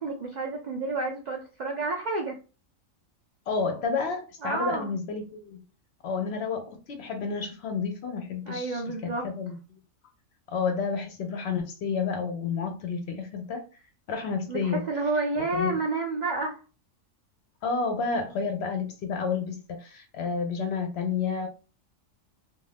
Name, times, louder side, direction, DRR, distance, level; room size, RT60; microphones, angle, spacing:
voice 1, 0.0-2.4 4.4-4.9 8.5-9.3 14.5-16.6, right 3 dB, 75° right, 0.4 m, -30 dB
voice 2, 3.5-5.6 6.0-9.8 10.5-13.7 14.1-14.8 15.5-15.7 17.6-21.5, left 5 dB, 65° left, 0.7 m, -30 dB
2.5 x 2.3 x 3.2 m
omnidirectional pair, 1.4 m